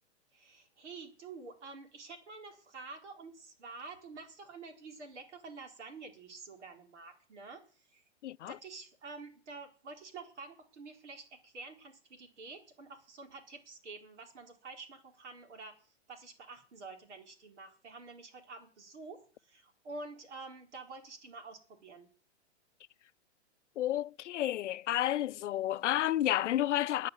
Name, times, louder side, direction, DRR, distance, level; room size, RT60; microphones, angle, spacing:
voice 1, 0.3-8.0 8.5-22.1, right 3 dB, 75° right, 4.3 m, -48 dB
voice 2, 8.2-8.6 23.8-27.1, left 13 dB, 85° left, 0.5 m, -31 dB
10.5 x 9.4 x 7.3 m
hypercardioid pair, 145°, 35 cm